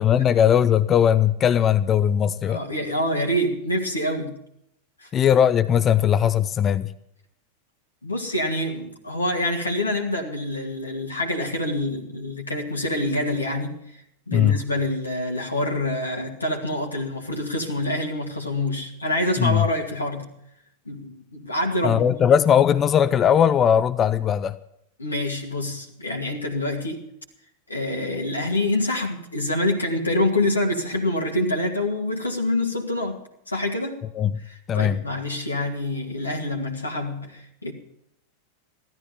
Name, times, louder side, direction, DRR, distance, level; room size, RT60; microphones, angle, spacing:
voice 1, 0.0-2.6 5.1-6.9 14.3-14.6 19.4-19.7 21.8-24.6 34.1-34.3 34.7-35.0, left 9 dB, 25° left, 15 dB, 0.6 m, -19 dB
voice 2, 2.5-4.4 5.0-5.1 8.0-13.8 14.3-20.3 20.9-22.3 25.0-27.1 27.7-33.2 33.5-34.0 34.4-37.7, left 1 dB, 80° left, 1 dB, 2.2 m, -26 dB
15.5 x 13.0 x 5.7 m, 0.75 s
figure-of-eight pair, 90°, 0 cm